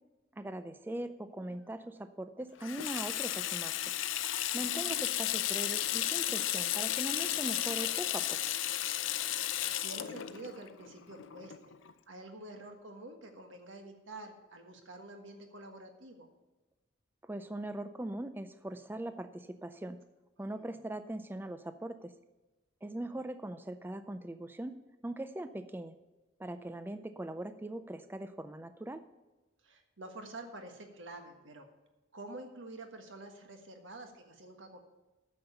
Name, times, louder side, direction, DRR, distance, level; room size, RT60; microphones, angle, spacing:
voice 1, 0.3-3.8 4.5-8.4 17.2-20.0 20.4-22.1 22.8-24.7 25.0-25.9 26.4-29.0, right 1 dB, 10° right, 10 dB, 0.3 m, -40 dB
Water tap faucet / Sink (filling or washing), 2.6-11.9, left 12 dB, 70° left, 0.5 m, -34 dB
voice 2, 4.5-5.0 9.8-11.7 12.1-16.3 20.4-20.7 23.1-23.2 29.6-31.7 32.1-34.8, right 2 dB, 70° right, 4 dB, 1.5 m, -48 dB
9.3 x 7.0 x 6.8 m, 1.1 s
head